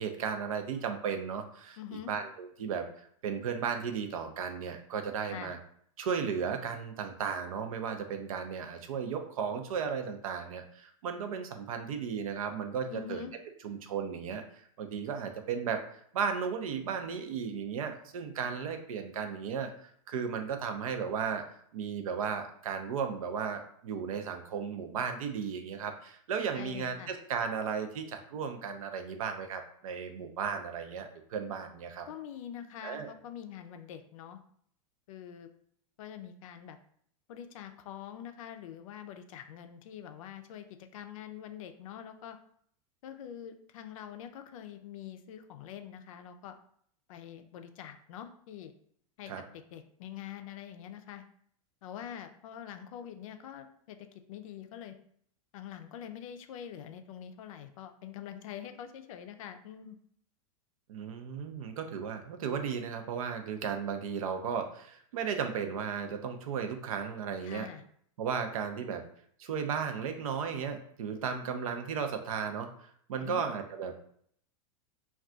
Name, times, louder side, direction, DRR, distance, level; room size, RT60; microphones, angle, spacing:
voice 1, 0.0-1.8 2.1-5.6 6.0-13.2 13.6-19.7 20.1-21.4 21.7-32.1 32.8-33.1 49.3-49.4 60.9-67.7 68.2-69.0 69.4-74.0, right 6 dB, 80° right, 6 dB, 0.5 m, -35 dB
voice 2, 1.8-2.1 5.3-5.6 12.9-13.3 26.6-27.1 32.1-34.4 35.1-35.5 36.0-36.8 37.3-40.7 40.9-42.4 43.0-46.6 47.1-48.7 49.2-51.2 51.8-55.0 55.5-60.0 67.4-67.8 73.2-73.4, left 9 dB, 75° left, 8 dB, 0.4 m, -45 dB
2.3 x 2.3 x 3.7 m, 0.63 s
hypercardioid pair, 120°, 18 cm